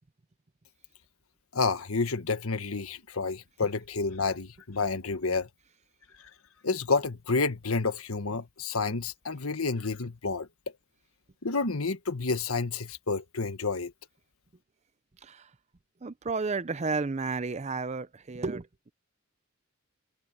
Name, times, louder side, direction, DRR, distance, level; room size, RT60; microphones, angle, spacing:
voice 1, 1.5-5.5 6.6-10.5 11.4-13.9, left 4 dB, 80° left, 1.4 m, -29 dB
voice 2, 16.0-18.9, right 4 dB, 30° right, 0.6 m, -32 dB
head